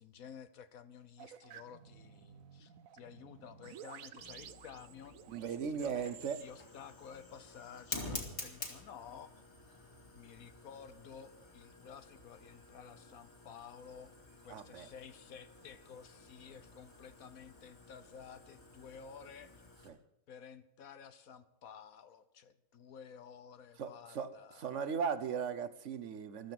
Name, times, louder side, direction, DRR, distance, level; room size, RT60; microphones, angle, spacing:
voice 1, 0.0-6.1 6.4-9.4 10.1-14.1 14.4-19.6 20.3-24.9, left 7 dB, 80° left, 1.4 m, -53 dB
sound 1, 1.2-6.4, right 9 dB, 80° right, 1.2 m, -54 dB
Fire, 4.2-19.9, left 2 dB, 55° left, 2.7 m, -50 dB
voice 2, 5.3-6.4 8.4-8.5 14.5-14.9 19.8-20.0 23.8-24.3 24.6-26.5, right 6 dB, 60° right, 1.2 m, -38 dB
14.5 x 13.0 x 6.0 m
omnidirectional pair, 1.5 m